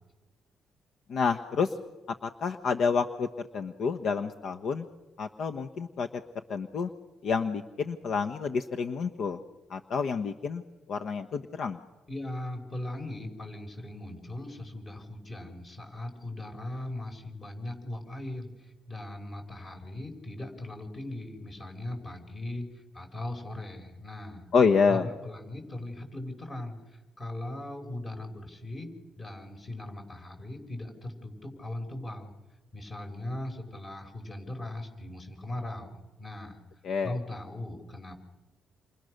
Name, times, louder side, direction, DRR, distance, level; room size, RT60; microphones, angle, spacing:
voice 1, 1.1-1.8 2.2-3.3 3.5-4.9 5.2-6.2 6.5-6.9 7.2-9.4 9.7-10.6 10.9-11.8 24.5-25.1 36.8-37.2, left 5 dB, 65° left, 7 dB, 1.2 m, -28 dB
voice 2, 12.1-24.5 24.9-32.3 32.7-36.6 37.0-38.2, left 1 dB, 35° left, 5 dB, 6.1 m, -39 dB
29.0 x 29.0 x 6.7 m, 1.2 s
cardioid pair, 90°, 0 cm